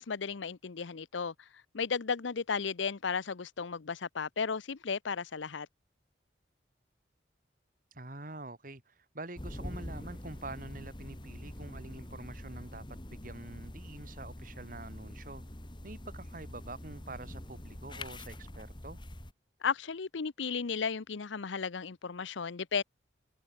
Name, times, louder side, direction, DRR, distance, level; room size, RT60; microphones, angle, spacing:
voice 1, 0.0-1.5 1.7-5.7 19.6-22.8, left 5 dB, 80° left, 0.7 m, -34 dB
voice 2, 7.9-15.4 15.8-19.0, right 2 dB, 45° right, 2.7 m, -46 dB
sound 1, 9.4-19.3, left 1 dB, 25° left, 1.9 m, -45 dB
head